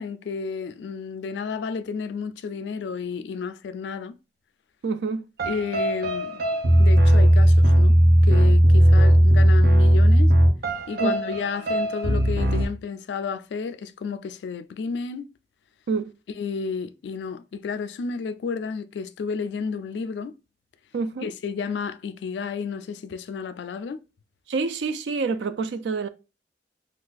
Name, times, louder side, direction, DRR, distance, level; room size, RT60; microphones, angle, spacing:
voice 1, 0.0-4.1 5.4-6.4 6.8-8.0 8.2-10.3 10.9-15.3 16.4-20.3 21.2-24.0, left 5 dB, 75° left, 0.3 m, -31 dB
voice 2, 4.8-5.3 11.0-11.2 15.9-16.1 20.9-21.3 24.5-26.1, right 4 dB, 80° right, 0.4 m, -27 dB
sound 1, 5.4-12.7, equal, 55° right, 0.7 m, -17 dB
2.5 x 2.3 x 3.9 m
head